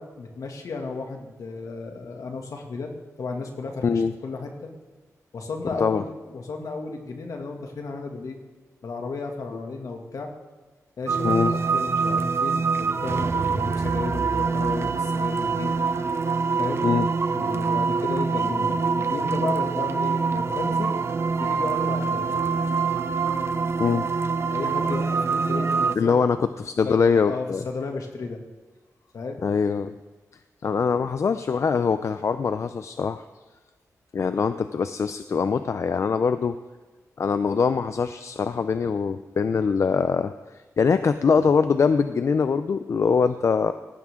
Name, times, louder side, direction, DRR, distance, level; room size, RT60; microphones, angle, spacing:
voice 1, 0.0-2.9 3.2-3.8 4.2-4.7 5.3-8.4 8.8-10.3 11.0-15.8 16.6-16.9 17.3-21.0 21.4-22.3 24.5-26.2 26.8-28.4 29.1-29.4, left 4 dB, 70° left, 2 dB, 2.3 m, -33 dB
sound 1, 11.1-26.0, right 5 dB, 45° right, 0.7 m, -25 dB
voice 2, 11.2-11.6 16.8-17.1 23.8-24.0 26.0-27.6 29.4-30.0 30.6-33.2 34.1-36.6 37.2-40.3 40.8-43.7, left 5 dB, 55° left, 11 dB, 0.5 m, -23 dB
18.5 x 16.0 x 3.8 m, 1.3 s
wide cardioid pair, 120°, 6 cm